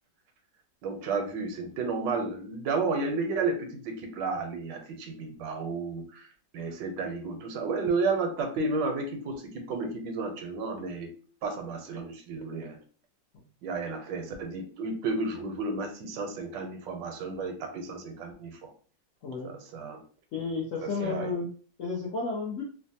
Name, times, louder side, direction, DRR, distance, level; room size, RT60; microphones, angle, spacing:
voice 1, 0.8-11.1 11.4-12.8 13.6-18.7 19.4-20.0 20.8-21.3, right 3 dB, 80° right, 4 dB, 1.3 m, -32 dB
voice 2, 19.2-19.5 20.3-21.5 21.8-22.6, left 4 dB, 70° left, -3 dB, 0.7 m, -32 dB
3.2 x 2.1 x 2.7 m, 0.41 s
omnidirectional pair, 2.0 m